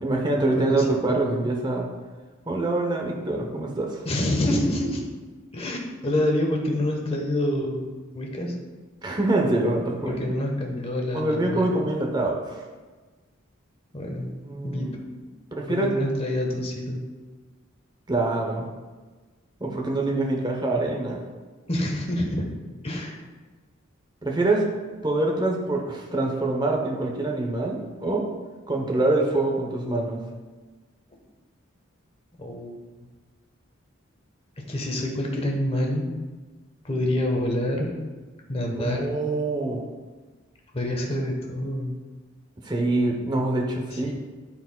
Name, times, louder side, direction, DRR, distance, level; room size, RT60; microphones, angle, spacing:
voice 1, 0.0-1.9 2.5-4.0 9.0-10.2 11.1-12.6 14.4-15.0 15.5-15.9 18.1-18.7 19.6-21.2 24.2-24.7 25.0-28.3 28.7-30.2 38.8-39.8 42.6-44.1, right 2 dB, 20° right, 0 dB, 0.7 m, -25 dB
voice 2, 0.7-1.1 4.0-5.0 5.5-8.5 10.0-11.8 13.9-14.3 14.6-14.9 15.7-17.0 21.7-22.4 22.8-23.2 32.4-32.8 34.7-36.1 36.8-37.9 38.5-39.1 40.7-42.0 43.9-44.1, left 1 dB, 30° left, 1 dB, 1.0 m, -27 dB
12.0 x 4.5 x 2.2 m, 1.3 s
head